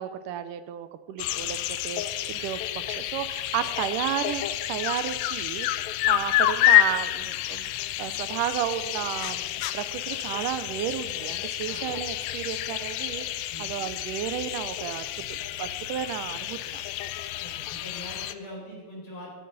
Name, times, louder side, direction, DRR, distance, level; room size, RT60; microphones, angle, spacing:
voice 1, 0.0-1.6 1.8-2.6 2.9-4.4 4.7-5.7 6.1-7.7 8.0-13.3 13.6-16.8, right 11 dB, 85° right, 12 dB, 2.2 m, -33 dB
sound 1, 1.2-18.3, left 14 dB, 80° left, 1.6 m, -29 dB
voice 2, 17.4-19.3, left 1 dB, 50° left, -5 dB, 6.1 m, -42 dB
21.0 x 9.3 x 4.1 m, 1.4 s
omnidirectional pair, 3.7 m